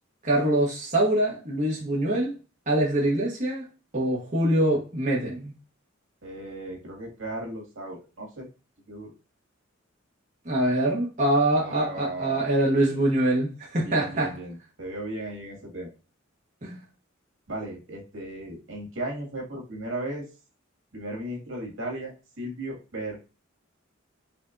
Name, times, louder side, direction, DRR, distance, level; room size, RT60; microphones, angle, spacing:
voice 1, 0.2-2.4 2.7-3.6 3.9-5.5 10.4-14.3 16.6-16.8, right 1 dB, 40° right, -4 dB, 1.2 m, -24 dB
voice 2, 6.2-8.5 8.9-9.1 11.6-12.5 13.8-15.9 17.5-20.3 20.9-23.2, right 1 dB, 85° right, -1 dB, 2.1 m, -36 dB
4.9 x 3.5 x 2.6 m, 0.31 s
head